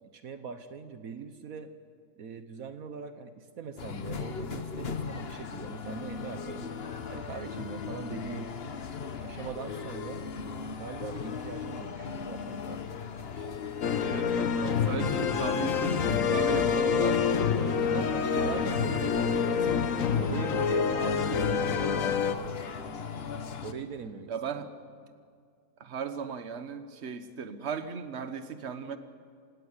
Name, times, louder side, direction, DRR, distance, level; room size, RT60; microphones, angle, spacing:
voice 1, 0.0-1.7 2.2-6.7 7.1-8.5 9.2-10.2 10.8-13.0 13.3-13.6 17.9-19.1 20.2-22.8 23.6-24.3, right 6 dB, 70° right, 9 dB, 1.5 m, -41 dB
sound 1, 3.8-23.7, left 6 dB, 45° left, 1.3 m, -38 dB
sound 2, 13.8-22.3, left 6 dB, 65° left, 1.4 m, -27 dB
voice 2, 14.0-19.9 23.2-23.5 24.3-24.7 25.8-29.0, right 6 dB, 50° right, 10 dB, 1.5 m, -37 dB
27.0 x 17.5 x 9.7 m, 2.1 s
omnidirectional pair, 1.5 m